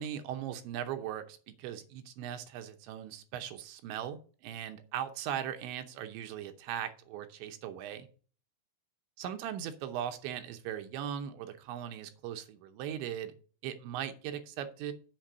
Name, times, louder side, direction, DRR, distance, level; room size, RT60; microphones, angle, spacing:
voice 1, 0.0-8.1 9.2-13.3 13.6-14.9, right 10 dB, 80° right, 7 dB, 3.1 m, -39 dB
7.5 x 6.3 x 6.5 m, 0.40 s
omnidirectional pair, 5.2 m